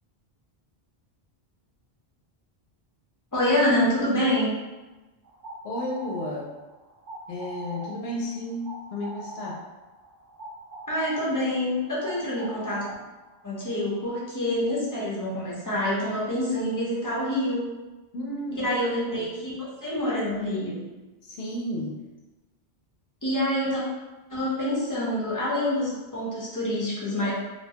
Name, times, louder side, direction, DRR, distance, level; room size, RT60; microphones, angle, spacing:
voice 1, 3.3-4.5 10.9-12.9 13.4-17.7 18.6-19.5 19.8-20.8 23.2-23.8 24.3-27.3, left 1 dB, 20° left, -7 dB, 0.7 m, -26 dB
sound 1, 5.2-14.1, right 1 dB, 60° right, 0.6 m, -42 dB
voice 2, 5.6-6.5 7.3-9.6 18.1-18.7 19.2-19.3 21.2-21.9, left 1 dB, 75° left, -2 dB, 0.8 m, -32 dB
2.8 x 2.1 x 2.7 m, 1.1 s
omnidirectional pair, 1.0 m